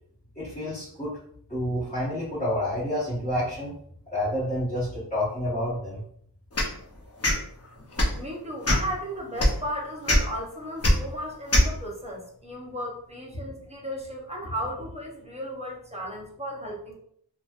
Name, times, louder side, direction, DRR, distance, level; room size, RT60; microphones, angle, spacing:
voice 1, 0.3-1.2 1.5-3.7 4.1-6.0, left 1 dB, 15° left, -11 dB, 1.0 m, -29 dB
sound 1, 6.5-6.7 7.2-7.4 7.9-8.2 8.6-8.9 9.4-9.5 10.1-10.2 10.8-10.9 11.5-11.7, left 1 dB, 40° left, 0.7 m, -20 dB
voice 2, 8.2-16.9, equal, 15° right, -2 dB, 0.7 m, -35 dB
3.0 x 2.2 x 2.4 m, 0.63 s
wide cardioid pair, 90°, 40 cm